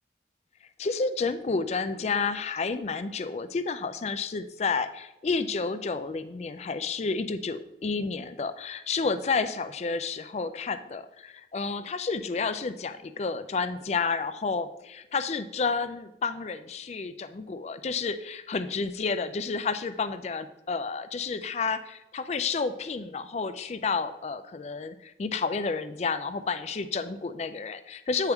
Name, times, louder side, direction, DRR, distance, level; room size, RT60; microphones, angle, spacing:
voice 1, 0.8-28.3, left 4 dB, 35° left, 12 dB, 0.3 m, -30 dB
8.0 x 4.6 x 3.5 m, 0.90 s
head